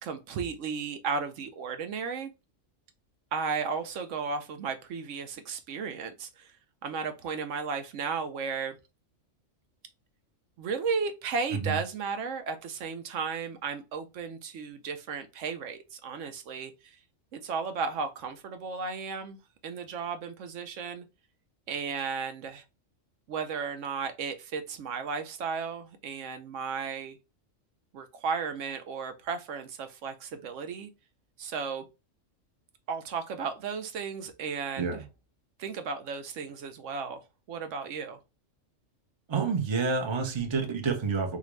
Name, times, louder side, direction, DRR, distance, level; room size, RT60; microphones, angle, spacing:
voice 1, 0.0-2.3 3.3-6.5 6.8-8.8 10.6-17.0 17.3-19.4 19.6-21.1 21.7-22.6 23.3-27.2 27.9-30.9 31.4-31.8 32.9-35.0 35.6-37.2 37.5-38.2, right 5 dB, 75° right, 0.9 m, -34 dB
voice 2, 39.3-41.4, right 5 dB, 30° right, 0.6 m, -29 dB
3.6 x 2.5 x 3.1 m
omnidirectional pair, 1.3 m